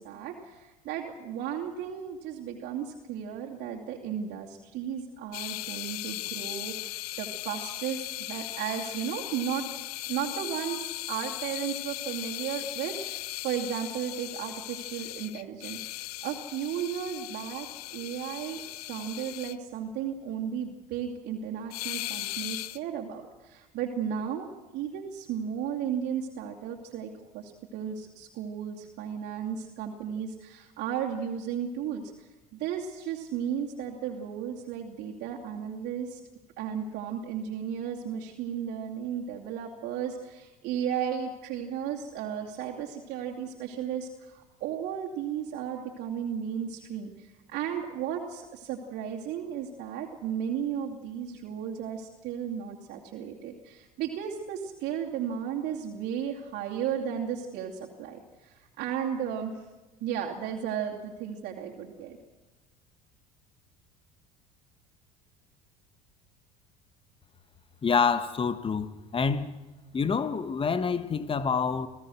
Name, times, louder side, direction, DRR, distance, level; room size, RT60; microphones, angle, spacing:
voice 1, 0.0-9.7 10.1-18.6 18.9-36.2 36.6-59.7 60.0-62.2, right 8 dB, 60° right, 2.6 m, -34 dB
sound 1, 5.3-19.6 21.7-22.8, left 17 dB, 80° left, 0.6 m, -38 dB
voice 2, 67.8-69.5 69.9-71.9, left 5 dB, 30° left, 1.5 m, -27 dB
27.0 x 16.0 x 6.4 m
hypercardioid pair, 75°, 19 cm